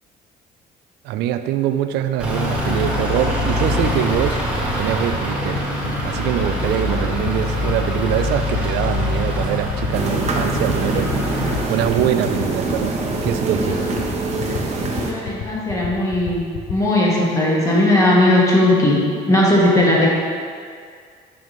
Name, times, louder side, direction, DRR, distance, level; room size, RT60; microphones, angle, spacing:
voice 1, 1.0-4.4 4.7-5.7 6.0-11.1 11.7-13.9, right 10 dB, 80° right, 9 dB, 0.4 m, -23 dB
Truck / Idling, 2.2-11.6, left 1 dB, 5° right, 1.4 m, -23 dB
sound 1, 3.2-16.7, left 10 dB, 75° left, 0.6 m, -30 dB
sound 2, 9.9-15.1, right 3 dB, 40° right, 0.9 m, -24 dB
voice 2, 13.5-14.2 15.1-16.4 16.7-19.0 19.3-20.1, left 1 dB, 20° left, -5 dB, 1.7 m, -17 dB
7.3 x 5.7 x 3.1 m, 2.1 s
cardioid pair, 110°, 17 cm